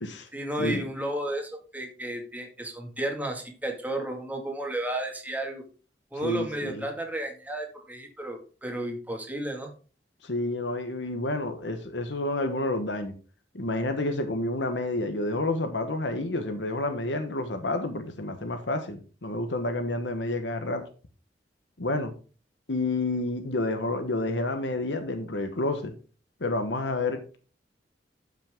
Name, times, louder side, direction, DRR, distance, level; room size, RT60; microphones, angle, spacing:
voice 1, 0.3-5.6 6.1-9.7, right 1 dB, 10° right, 2 dB, 2.1 m, -33 dB
voice 2, 6.2-6.9 10.2-13.1 13.5-20.8 21.8-22.1 22.7-25.9 26.4-27.4, left 2 dB, 80° left, 8 dB, 1.3 m, -29 dB
12.5 x 5.9 x 3.7 m, 0.36 s
head